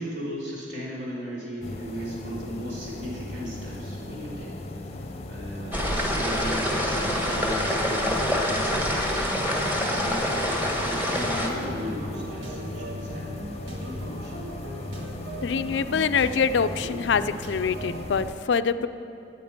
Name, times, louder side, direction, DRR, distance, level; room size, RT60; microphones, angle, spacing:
voice 1, 0.0-14.4, equal, 65° right, -6 dB, 3.5 m, -37 dB
sound 1, 1.6-18.3, left 1 dB, 35° left, 0.7 m, -38 dB
sound 2, 5.7-11.5, equal, 10° right, 1.3 m, -26 dB
sound 3, 11.1-18.0, right 1 dB, 85° right, 1.5 m, -39 dB
voice 2, 15.4-18.9, left 6 dB, 70° left, 12 dB, 0.4 m, -25 dB
9.3 x 9.0 x 8.9 m, 2.7 s
head